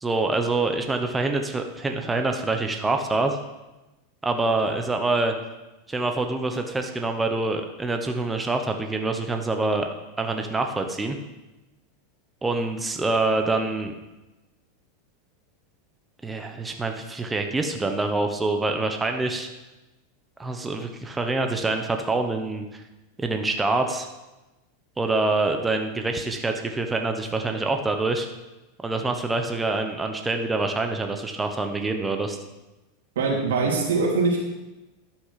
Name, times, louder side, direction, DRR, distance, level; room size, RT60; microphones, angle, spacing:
voice 1, 0.0-3.4 4.2-5.3 5.9-9.9 10.2-11.2 12.4-13.9 16.2-19.5 20.4-22.8 23.2-24.1 25.0-28.3 28.8-32.4, right 3 dB, 10° right, 4 dB, 1.0 m, -26 dB
voice 2, 33.2-34.4, right 4 dB, 90° right, -3 dB, 3.4 m, -22 dB
12.0 x 6.0 x 5.9 m, 1.1 s
supercardioid pair, 125°, 0 cm